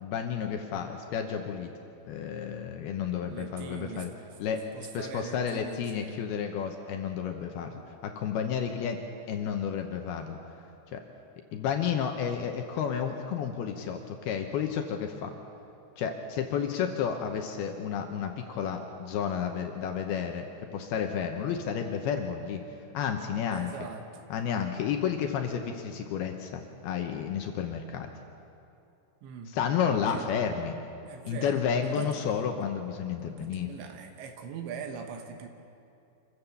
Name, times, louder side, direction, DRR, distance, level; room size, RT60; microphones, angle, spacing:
voice 1, 0.0-1.7 2.1-4.1 4.4-4.6 4.9-9.0 9.3-10.4 10.9-11.0 11.5-15.3 16.0-22.6 22.9-23.9 24.3-28.1 29.5-30.8 31.2-33.7, left 7 dB, 75° left, 4 dB, 2.4 m, -31 dB
voice 2, 3.3-4.2 4.7-6.2 23.5-24.1 29.2-29.5 30.1-30.3 31.0-32.2 33.3-35.5, right 6 dB, 75° right, 5 dB, 3.2 m, -42 dB
27.0 x 15.0 x 7.2 m, 2.7 s
omnidirectional pair, 5.6 m